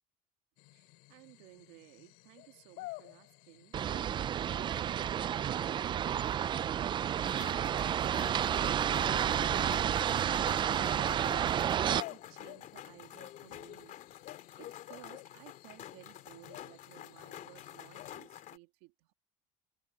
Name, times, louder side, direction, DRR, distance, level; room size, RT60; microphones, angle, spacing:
sound 1, 0.6-18.1, left 22 dB, 75° left, 4.5 m, -53 dB
voice 1, 0.7-14.0 14.2-19.1, right 22 dB, 80° right, 1.9 m, -56 dB
sound 2, 3.7-12.0, right 9 dB, 30° right, 0.3 m, -31 dB
sound 3, 7.2-18.6, left 12 dB, 55° left, 3.0 m, -49 dB
supercardioid pair, 105°, 16 cm